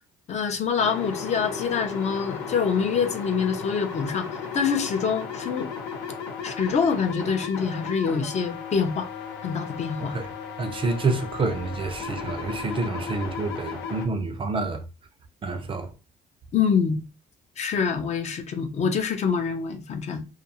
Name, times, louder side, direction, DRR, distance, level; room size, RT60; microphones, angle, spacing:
voice 1, 0.3-5.7 6.4-9.1 9.4-10.1 11.1-11.2 16.5-17.0 17.6-20.3, left 6 dB, 40° left, 0.5 m, -25 dB
sound 1, 0.8-14.1, left 6 dB, 85° left, 1.0 m, -35 dB
voice 2, 10.6-14.8 15.4-15.9, right 3 dB, 30° right, 0.5 m, -28 dB
2.3 x 2.3 x 2.8 m
cardioid pair, 110°, 17 cm